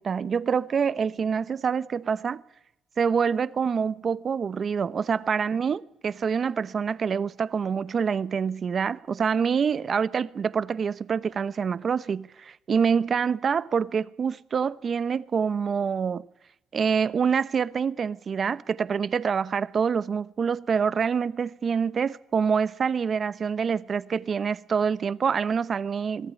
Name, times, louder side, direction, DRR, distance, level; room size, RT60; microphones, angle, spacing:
voice 1, 0.0-2.4 3.0-16.3 16.7-26.3, right 6 dB, 50° right, 0.9 m, -26 dB
23.0 x 15.5 x 9.7 m
cardioid pair, 90°, 0 cm